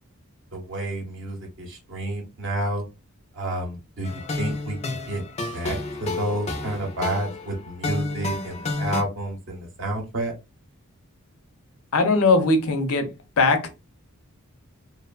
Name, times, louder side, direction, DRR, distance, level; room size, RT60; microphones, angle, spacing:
voice 1, 0.5-2.8 3.3-5.2 5.5-10.3, right 1 dB, 55° right, 0.7 m, -30 dB
sound 1, 4.0-9.0, left 2 dB, 30° left, 0.4 m, -30 dB
voice 2, 11.9-13.1 13.4-13.7, left 3 dB, 70° left, 0.6 m, -19 dB
2.8 x 2.0 x 2.3 m
head